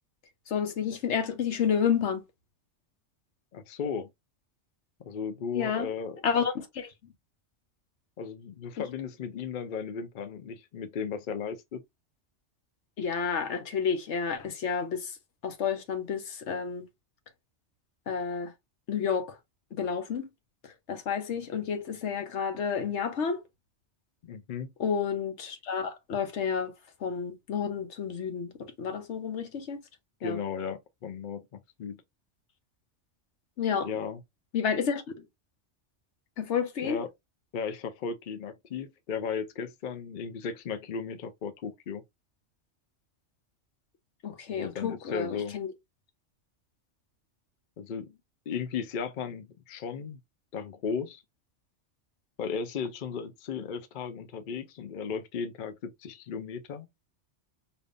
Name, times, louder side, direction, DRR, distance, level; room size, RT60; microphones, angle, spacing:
voice 1, 0.5-2.2 5.5-5.9 6.2-6.9 8.8-8.9 13.0-15.2 15.4-16.8 18.1-18.5 18.9-19.4 19.8-20.3 20.9-23.4 24.8-26.7 27.0-29.8 30.2-30.4 33.6-33.9 34.5-35.0 36.4-37.0 44.2-45.7, left 7 dB, 75° left, 1.1 m, -30 dB
voice 2, 3.5-4.1 5.0-6.2 8.2-11.8 24.2-24.7 30.2-32.0 33.8-34.2 36.8-37.1 37.5-42.0 44.5-45.6 47.8-48.2 48.5-50.2 50.5-51.2 52.4-56.9, left 6 dB, 55° left, 0.6 m, -35 dB
5.1 x 2.7 x 2.5 m
omnidirectional pair, 1.2 m